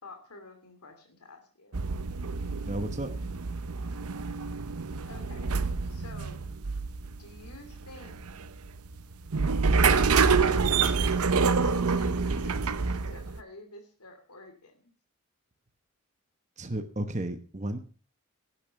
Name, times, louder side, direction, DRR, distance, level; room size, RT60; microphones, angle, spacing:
voice 1, 0.0-1.8 5.1-5.6 5.9-6.4 7.2-8.2 9.8-14.9, left 3 dB, 85° left, 6 dB, 2.9 m, -49 dB
sound 1, 1.7-13.4, right 5 dB, 80° right, 0.8 m, -27 dB
voice 2, 2.6-3.1 16.6-17.8, right 1 dB, 30° right, 7 dB, 1.1 m, -33 dB
12.0 x 9.2 x 6.9 m, 0.40 s
head